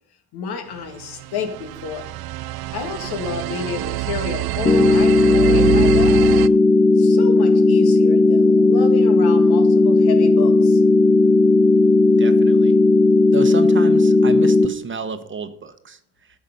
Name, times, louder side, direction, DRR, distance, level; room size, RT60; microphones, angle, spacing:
voice 1, 0.3-2.1 2.7-6.3 7.0-10.8, left 5 dB, 80° left, 5 dB, 2.0 m, -30 dB
sound 1, 1.1-6.5, right 18 dB, 70° right, 0.5 m, -25 dB
sound 2, 4.7-14.7, left 3 dB, 15° left, 0.7 m, -15 dB
voice 2, 12.2-12.7 13.3-16.0, right 5 dB, 30° right, 10 dB, 1.0 m, -31 dB
11.0 x 7.0 x 5.3 m, 0.68 s
cardioid pair, 105°, 38 cm